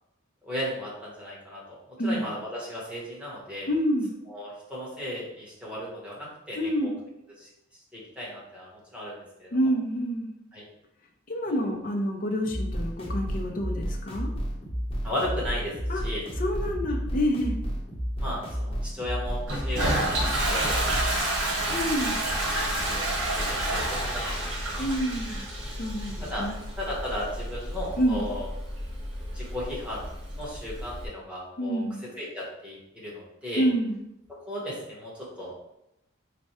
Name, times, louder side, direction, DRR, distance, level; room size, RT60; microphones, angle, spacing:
voice 1, 0.4-1.8 2.0-3.7 4.3-6.9 7.4-7.5 7.9-9.6 10.5-10.7 15.0-15.7 16.0-16.2 16.9-17.1 18.2-20.2 20.5-21.7 22.7-24.9 26.2-26.5 26.8-28.5 29.3-30.1 30.3-31.8 32.2-33.7 34.3-35.6, left 1 dB, 5° right, -6 dB, 1.1 m, -35 dB
voice 2, 3.7-4.1 6.5-6.9 9.5-10.3 11.3-14.3 15.9-16.0 16.4-17.6 21.7-22.2 24.8-25.5 25.8-26.6 28.0-28.2 31.6-32.0 33.6-34.0, equal, 45° left, 2 dB, 0.6 m, -27 dB
sound 1, 12.4-21.2, equal, 30° left, 0.9 m, -31 dB
Toilet flush, 19.5-31.1, right 1 dB, 80° right, 1.2 m, -30 dB
3.3 x 2.2 x 4.2 m, 0.84 s
head